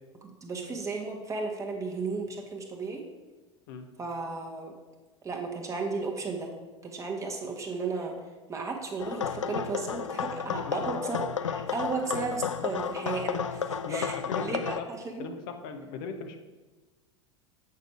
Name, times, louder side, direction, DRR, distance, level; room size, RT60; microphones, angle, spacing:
voice 1, 0.2-3.0 4.0-4.7 5.2-6.5 6.8-8.1 8.5-15.3, right 4 dB, 20° right, 1 dB, 1.5 m, -34 dB
sound 1, 9.0-14.8, left 7 dB, 80° left, 0.4 m, -32 dB
voice 2, 10.6-11.0 13.8-14.9 15.2-16.4, left 4 dB, 50° left, 6 dB, 0.9 m, -38 dB
8.3 x 6.5 x 4.9 m, 1.2 s
figure-of-eight pair, 80°, 16 cm